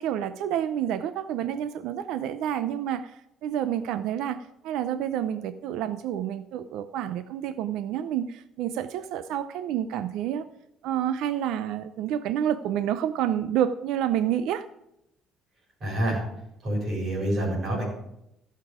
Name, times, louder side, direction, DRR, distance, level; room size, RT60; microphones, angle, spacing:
voice 1, 0.0-4.4 4.6-10.4 10.8-14.6, right 10 dB, 70° right, 12 dB, 0.5 m, -29 dB
voice 2, 15.8-16.2 16.6-17.8, right 1 dB, 35° right, -4 dB, 4.7 m, -27 dB
15.5 x 6.7 x 4.9 m, 0.82 s
cardioid pair, 180°, 0 cm